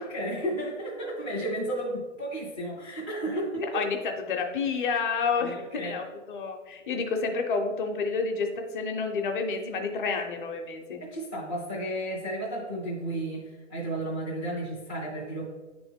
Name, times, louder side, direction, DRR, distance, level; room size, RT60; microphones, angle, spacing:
voice 1, 0.0-3.8 5.4-6.0 11.0-15.5, right 1 dB, 10° left, -7 dB, 0.4 m, -33 dB
voice 2, 3.7-11.0, left 4 dB, 40° left, 4 dB, 0.9 m, -30 dB
9.3 x 3.4 x 3.6 m, 1.2 s
hypercardioid pair, 150°, 38 cm